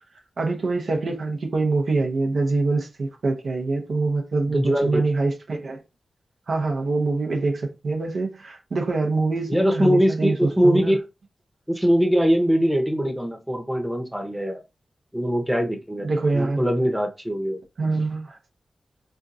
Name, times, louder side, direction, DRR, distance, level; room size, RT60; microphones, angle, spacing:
voice 1, 0.4-5.8 6.5-11.0 16.0-16.6 17.8-18.4, right 3 dB, 70° right, 0.8 m, -24 dB
voice 2, 4.5-5.0 9.5-11.0 11.7-14.6 15.1-16.1 16.3-17.6, equal, 5° right, 0.9 m, -22 dB
4.3 x 2.4 x 2.6 m
cardioid pair, 65°, 0 cm